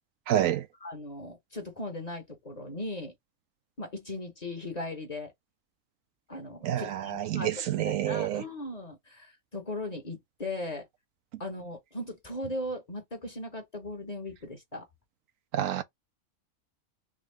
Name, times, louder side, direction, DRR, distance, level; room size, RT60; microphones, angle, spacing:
voice 1, 0.3-0.7 6.6-8.4 15.5-15.8, right 11 dB, 75° right, 0.9 m, -28 dB
voice 2, 0.8-3.1 3.8-5.3 6.3-10.9 11.4-14.8, left 1 dB, 30° left, 1.1 m, -38 dB
3.7 x 3.1 x 3.3 m
omnidirectional pair, 1.5 m